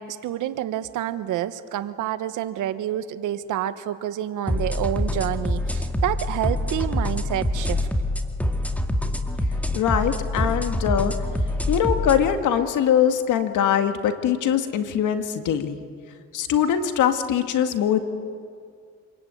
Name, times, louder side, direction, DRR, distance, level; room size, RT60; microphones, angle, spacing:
voice 1, 0.0-7.9, right 12 dB, 85° right, 12 dB, 1.2 m, -28 dB
sound 1, 4.5-12.2, left 1 dB, 5° left, 2.1 m, -25 dB
voice 2, 9.7-11.1 11.7-15.8 16.3-18.0, left 9 dB, 80° left, 7 dB, 2.0 m, -22 dB
26.5 x 22.5 x 9.2 m, 2.2 s
cardioid pair, 90°, 30 cm